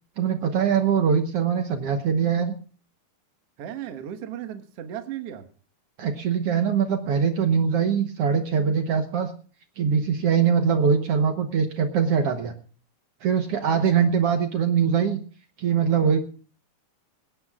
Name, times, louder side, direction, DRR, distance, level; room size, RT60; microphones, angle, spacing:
voice 1, 0.2-2.5 6.0-9.3 9.8-12.5 13.2-15.2 15.6-16.2, right 7 dB, 75° right, 6 dB, 1.4 m, -22 dB
voice 2, 3.6-5.5 13.9-14.1, right 10 dB, 55° right, 8 dB, 1.8 m, -35 dB
21.0 x 17.5 x 2.4 m, 0.40 s
omnidirectional pair, 4.2 m